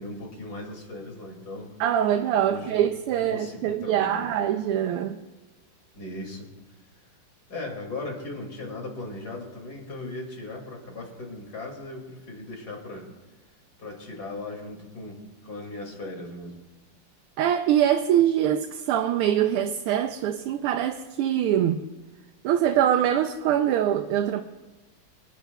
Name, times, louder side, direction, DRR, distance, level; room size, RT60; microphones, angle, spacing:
voice 1, 0.0-1.8 2.5-2.8 3.3-4.3 5.9-6.5 7.5-13.1 13.8-16.6, left 2 dB, 45° left, 3.0 m, -38 dB
voice 2, 1.8-5.2 17.4-21.8 22.4-24.4, right 10 dB, 85° right, 1.5 m, -23 dB
25.0 x 10.5 x 2.3 m
omnidirectional pair, 2.4 m